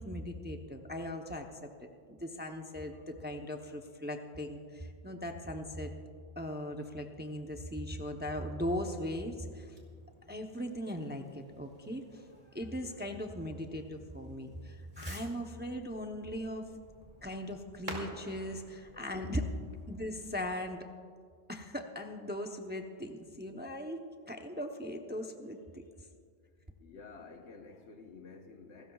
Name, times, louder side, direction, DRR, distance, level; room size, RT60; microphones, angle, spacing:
voice 1, 0.0-1.5 1.8-5.9 6.4-9.8 10.3-16.7 17.2-19.5 19.9-20.8 21.5-24.0 24.3-25.8, equal, 10° right, 0.6 m, -39 dB
Fireworks, 9.1-20.5, right 1 dB, 35° right, 2.6 m, -52 dB
voice 2, 26.8-28.9, left 4 dB, 85° left, 1.4 m, -51 dB
28.0 x 13.5 x 2.3 m
omnidirectional pair, 1.1 m